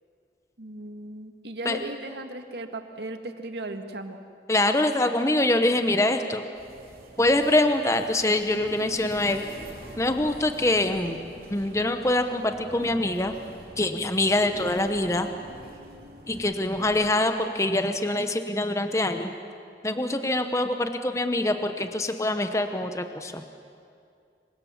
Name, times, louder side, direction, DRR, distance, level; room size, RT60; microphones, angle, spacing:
voice 1, 0.6-4.2, right 2 dB, 75° right, 6 dB, 1.9 m, -36 dB
voice 2, 4.5-6.4 7.2-9.4 10.0-11.2 11.5-13.3 13.8-15.3 16.3-19.3 19.8-23.4, left 1 dB, 15° left, 7 dB, 1.0 m, -24 dB
sound 1, 6.5-17.1, equal, 55° right, 4.1 m, -46 dB
27.0 x 24.0 x 7.3 m, 2.4 s
head